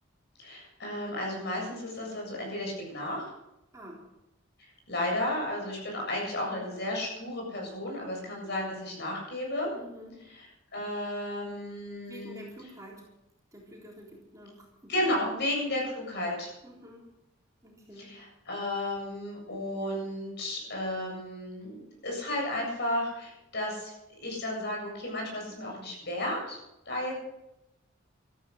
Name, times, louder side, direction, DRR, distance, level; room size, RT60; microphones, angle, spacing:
voice 1, 0.4-3.3 4.6-9.7 10.3-10.5 10.7-12.5 14.9-16.5 18.0-23.9 24.2-26.6 26.9-27.1, left 1 dB, 50° left, -1 dB, 7.7 m, -33 dB
voice 2, 9.7-10.2 12.1-13.0 13.5-15.1 16.6-17.1 17.6-18.2, equal, 15° right, -3 dB, 3.7 m, -48 dB
15.0 x 13.5 x 6.5 m, 0.89 s
head